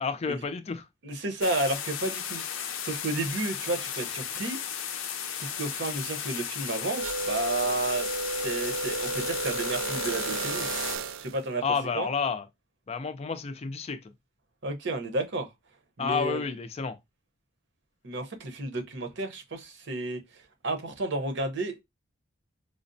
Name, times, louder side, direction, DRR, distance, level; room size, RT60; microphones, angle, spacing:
voice 1, 0.0-0.9 11.6-12.5 12.9-14.0 16.0-17.0, left 5 dB, 30° left, 0.4 m, -30 dB
voice 2, 1.0-2.4 2.8-4.6 5.4-8.1 8.4-10.7 11.2-11.6 11.9-12.1 14.6-15.5 16.0-16.4 18.0-21.8, right 2 dB, 60° right, 0.8 m, -32 dB
sound 1, 1.4-11.0, left 8 dB, 85° left, 0.5 m, -35 dB
sound 2, 7.0-11.4, right 3 dB, 85° right, 0.3 m, -32 dB
4.9 x 2.0 x 2.6 m
head